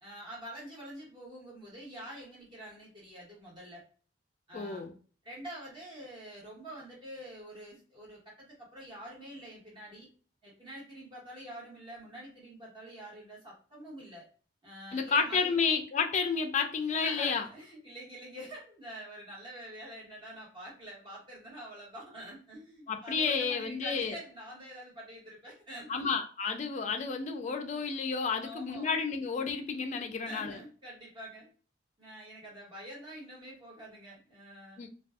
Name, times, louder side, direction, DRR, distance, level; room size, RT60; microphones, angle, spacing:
voice 1, 0.0-3.8 4.5-4.9 5.2-10.1 10.4-14.3 14.6-15.6 16.9-26.1 28.4-29.0 29.9-31.5 32.0-34.8, equal, 25° right, 1.3 m, -46 dB
voice 2, 4.5-4.9 14.9-17.4 22.9-24.1 25.9-30.6 34.8-34.9, left 5 dB, 40° left, 0.3 m, -31 dB
2.5 x 2.2 x 2.3 m
head